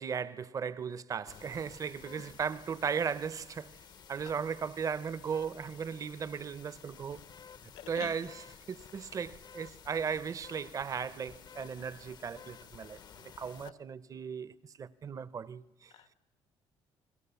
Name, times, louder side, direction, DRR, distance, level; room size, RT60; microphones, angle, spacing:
voice 1, 0.0-3.7 4.1-7.2 7.9-8.4 8.7-15.9, right 6 dB, 35° right, 0.8 m, -37 dB
sound 1, 1.3-13.7, left 7 dB, 50° left, 0.8 m, -53 dB
voice 2, 7.8-8.3 13.6-13.7 15.9-16.1, left 10 dB, 85° left, 1.6 m, -47 dB
29.0 x 20.0 x 7.0 m
cardioid pair, 115°, 10 cm